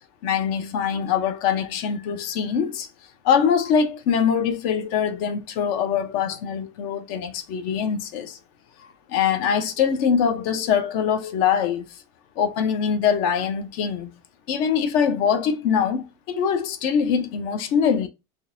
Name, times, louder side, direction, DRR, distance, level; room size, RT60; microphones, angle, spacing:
voice 1, 0.2-2.9 3.2-8.4 9.1-11.8 12.4-14.1 14.5-18.1, left 7 dB, 55° left, 0.7 m, -23 dB
3.7 x 2.8 x 2.6 m
cardioid pair, 175°, 13 cm